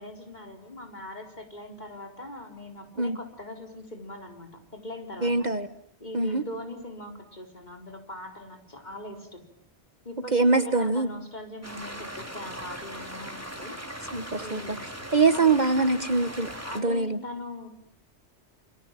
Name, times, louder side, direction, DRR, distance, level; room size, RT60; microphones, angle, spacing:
voice 1, 0.0-5.5 6.0-9.4 10.0-13.8 14.4-14.9 15.3-15.5 16.6-17.7, left 1 dB, 40° left, 4 dB, 4.6 m, -41 dB
voice 2, 5.2-5.7 6.1-6.4 10.3-11.1 14.1-14.6 15.1-16.5 16.7-17.2, right 3 dB, 40° right, 11 dB, 1.3 m, -23 dB
sound 1, 11.6-16.8, equal, 15° right, 3.4 m, -39 dB
28.5 x 26.5 x 7.5 m, 0.72 s
omnidirectional pair, 1.1 m